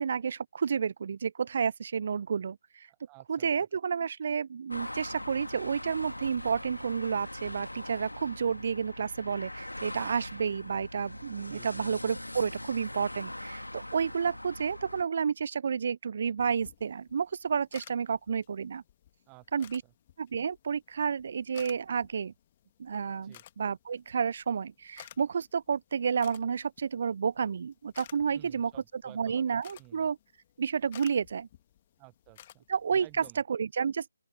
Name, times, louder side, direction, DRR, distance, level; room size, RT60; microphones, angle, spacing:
voice 1, 0.0-2.9 3.3-18.8 19.5-19.8 20.2-22.3 22.8-30.2 30.6-31.5 32.7-34.0, right 6 dB, 45° right, 0.4 m, -31 dB
voice 2, 2.9-3.5 11.5-11.9 19.3-19.9 23.2-23.4 28.3-29.5 29.8-30.1 32.0-32.6 33.0-33.4, right 31 dB, 15° right, 1.1 m, -54 dB
sound 1, 4.7-15.0, left 1 dB, 85° left, 1.6 m, -41 dB
sound 2, 16.4-33.3, left 12 dB, 25° left, 1.7 m, -56 dB
open air
figure-of-eight pair, 150°, 0 cm